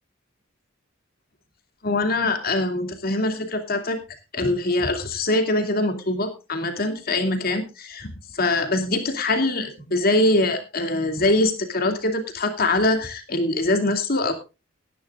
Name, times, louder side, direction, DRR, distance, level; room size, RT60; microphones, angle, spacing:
voice 1, 1.8-4.0 4.3-14.3, left 2 dB, 50° left, 6 dB, 2.6 m, -23 dB
18.5 x 11.0 x 2.5 m, 0.28 s
head